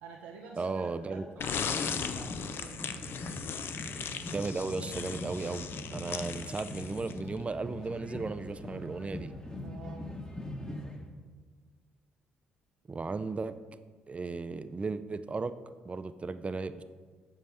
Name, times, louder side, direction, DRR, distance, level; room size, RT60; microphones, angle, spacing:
voice 1, 0.0-3.6 9.6-10.1, right 4 dB, 85° right, -2 dB, 0.6 m, -49 dB
voice 2, 0.6-1.2 4.3-9.3 12.9-13.6 14.1-15.5 15.8-16.8, right 3 dB, 25° right, 12 dB, 0.4 m, -35 dB
sound 1, 1.4-7.3, left 6 dB, 55° left, 0.5 m, -37 dB
sound 2, 1.8-11.0, left 1 dB, 20° left, 1.1 m, -42 dB
7.6 x 5.4 x 3.4 m, 1.5 s
hypercardioid pair, 50°, 4 cm